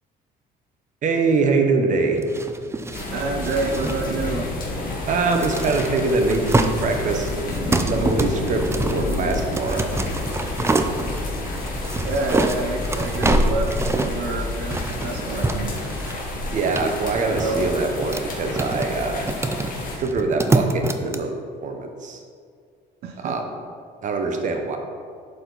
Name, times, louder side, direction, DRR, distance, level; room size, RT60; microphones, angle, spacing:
voice 1, 1.0-2.2 5.1-7.3 7.9-9.9 16.5-19.3 20.0-21.3 21.6-22.2 23.2-23.4 24.0-24.8, right 3 dB, 50° right, 4 dB, 1.0 m, -23 dB
sound 1, 2.1-21.2, right 2 dB, 15° right, 0.5 m, -27 dB
sound 2, 2.9-20.0, left 2 dB, 55° left, 1.9 m, -29 dB
voice 2, 3.1-4.5 12.0-15.8 17.2-17.7 23.0-23.4, right 3 dB, 75° right, 2 dB, 0.8 m, -28 dB
11.5 x 4.3 x 4.1 m, 2.2 s
cardioid pair, 110°, 17 cm